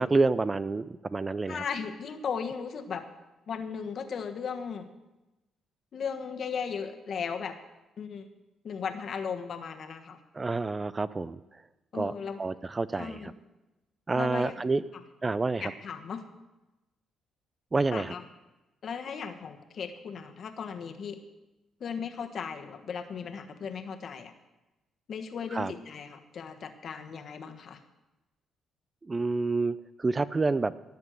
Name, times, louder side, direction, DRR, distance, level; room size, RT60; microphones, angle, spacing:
voice 1, 0.0-1.6 10.3-11.6 11.9-12.1 12.4-13.3 14.1-14.8 15.2-15.7 17.7-18.1 25.5-25.7 29.0-30.7, right 3 dB, 25° right, 16 dB, 0.4 m, -28 dB
voice 2, 1.5-3.0 3.5-4.9 5.9-7.6 8.0-8.3 8.6-10.2 11.9-12.4 13.0-13.3 14.1-14.6 15.6-16.2 17.9-18.2 18.8-21.2 21.8-24.3 25.1-27.8, left 6 dB, 55° left, 6 dB, 1.3 m, -36 dB
17.5 x 7.5 x 6.3 m, 1.0 s
cardioid pair, 90°, 0 cm